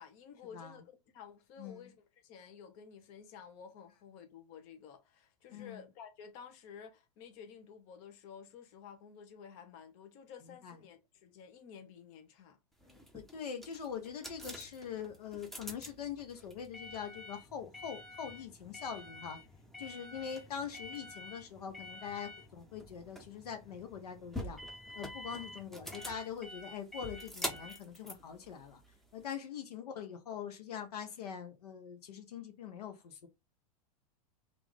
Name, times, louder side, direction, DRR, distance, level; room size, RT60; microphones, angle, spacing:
voice 1, 0.0-2.0 2.2-12.6 29.8-29.9, left 7 dB, 50° left, 0.9 m, -52 dB
voice 2, 1.6-1.9 5.5-5.9 10.6-10.8 13.1-19.4 19.8-24.6 24.9-28.8 29.1-33.3, left 7 dB, 80° left, 0.9 m, -43 dB
sound 1, 12.8-29.2, left 1 dB, ahead, 0.6 m, -46 dB
3.1 x 2.6 x 3.5 m
hypercardioid pair, 115°, 19 cm